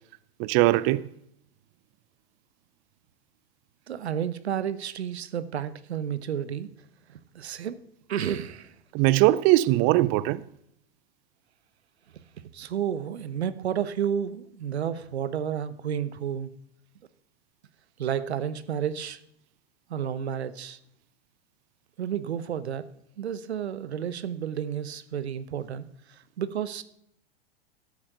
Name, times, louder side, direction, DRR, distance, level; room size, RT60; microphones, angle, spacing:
voice 1, 0.4-1.0 8.9-10.4, right 17 dB, 40° right, 0.5 m, -21 dB
voice 2, 3.9-6.7 7.1-7.8 8.1-8.7 12.5-16.5 18.0-19.2 19.9-20.8 22.0-22.8 23.2-26.8, right 9 dB, 80° right, 1.0 m, -31 dB
13.0 x 8.5 x 6.7 m
hypercardioid pair, 100°, 32 cm